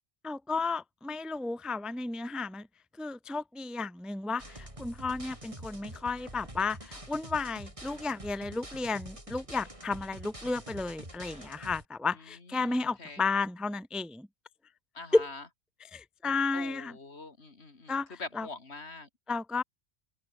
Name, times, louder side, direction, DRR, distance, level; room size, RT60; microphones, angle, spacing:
voice 1, 0.2-2.7 3.0-14.3 15.1-15.3 15.8-17.0 17.9-18.5 19.3-19.6, left 3 dB, ahead, 0.6 m, -33 dB
sound 1, 4.4-11.9, right 1 dB, 30° right, 5.9 m, -46 dB
voice 2, 12.6-13.2 14.9-15.4 16.5-19.1, left 3 dB, 70° left, 2.9 m, -44 dB
open air
omnidirectional pair, 1.2 m